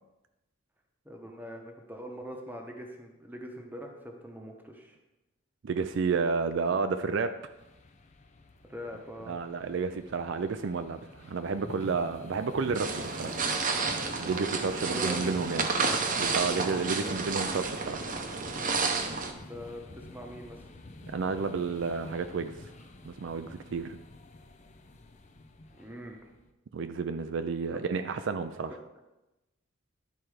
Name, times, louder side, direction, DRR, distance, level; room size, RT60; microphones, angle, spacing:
voice 1, 1.0-5.0 8.7-9.4 14.8-15.2 17.0-17.3 19.3-20.7 25.7-26.3 27.7-27.8, equal, 10° right, 1 dB, 1.0 m, -43 dB
voice 2, 5.6-7.3 9.3-13.4 14.2-15.7 16.2-18.0 21.1-22.6 23.0-24.0 26.7-28.7, right 4 dB, 60° right, 9 dB, 0.4 m, -31 dB
sound 1, 7.4-26.5, left 2 dB, 35° left, 0.5 m, -48 dB
sound 2, 12.7-19.3, right 4 dB, 40° right, 0.7 m, -31 dB
10.5 x 4.5 x 4.9 m, 0.99 s
head